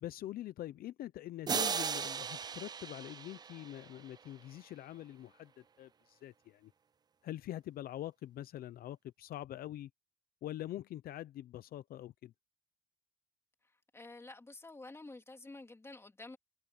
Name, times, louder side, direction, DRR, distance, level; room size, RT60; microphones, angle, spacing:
voice 1, 0.0-5.5 5.8-6.7 7.2-9.9 10.4-12.3, left 13 dB, 65° left, 0.7 m, -44 dB
sound 1, 1.5-4.3, right 6 dB, 25° right, 0.4 m, -37 dB
voice 2, 13.9-16.4, left 2 dB, 15° left, 2.9 m, -50 dB
cardioid pair, 110°, 17 cm